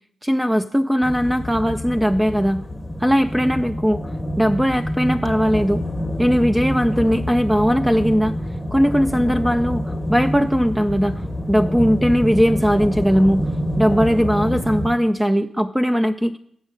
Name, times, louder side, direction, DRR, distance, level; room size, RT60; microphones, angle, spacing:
voice 1, 0.2-2.6 3.0-4.0 4.4-5.8 6.2-8.4 8.7-11.2 11.5-13.4 13.8-16.3, equal, 10° right, 7 dB, 0.4 m, -19 dB
sound 1, 1.0-14.9, equal, 15° left, 0.9 m, -27 dB
8.1 x 6.3 x 7.5 m, 0.70 s
supercardioid pair, 45°, 0 cm